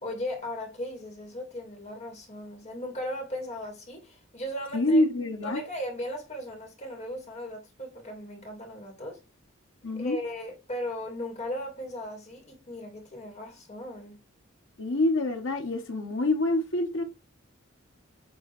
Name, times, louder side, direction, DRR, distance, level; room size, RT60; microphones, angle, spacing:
voice 1, 0.0-5.0 5.4-9.2 9.9-14.2, left 1 dB, 35° left, 2.4 m, -37 dB
voice 2, 4.7-5.6 9.8-10.2 14.8-17.0, left 2 dB, 70° left, 1.6 m, -26 dB
8.5 x 3.3 x 4.3 m
head